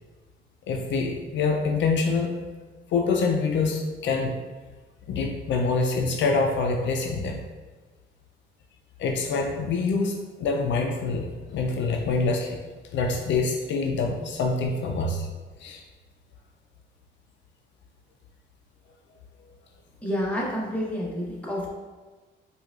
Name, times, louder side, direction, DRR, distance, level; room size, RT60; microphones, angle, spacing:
voice 1, 0.7-2.3 2.9-4.4 5.1-7.4 9.0-12.6 12.9-15.3 15.6-15.8, left 4 dB, 70° left, 2 dB, 0.4 m, -25 dB
voice 2, 20.0-21.7, equal, 5° left, -4 dB, 0.9 m, -29 dB
4.6 x 2.3 x 2.3 m, 1.4 s
cardioid pair, 90°, 20 cm